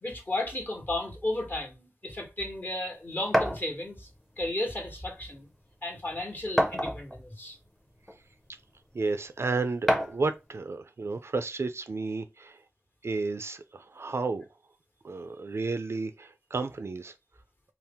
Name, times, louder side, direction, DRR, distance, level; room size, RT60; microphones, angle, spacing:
voice 1, 0.0-4.1 4.4-5.5 5.8-7.6, left 1 dB, 40° left, 1.2 m, -34 dB
sound 1, 3.3-3.6 4.8-4.9 5.3-5.4 6.6-7.2 8.1-8.2 9.9-10.3, equal, 5° left, 0.7 m, -26 dB
voice 2, 8.9-12.6 13.0-14.4 15.0-17.1, right 3 dB, 55° right, 0.4 m, -32 dB
4.3 x 2.0 x 3.5 m
wide cardioid pair, 85°, 5 cm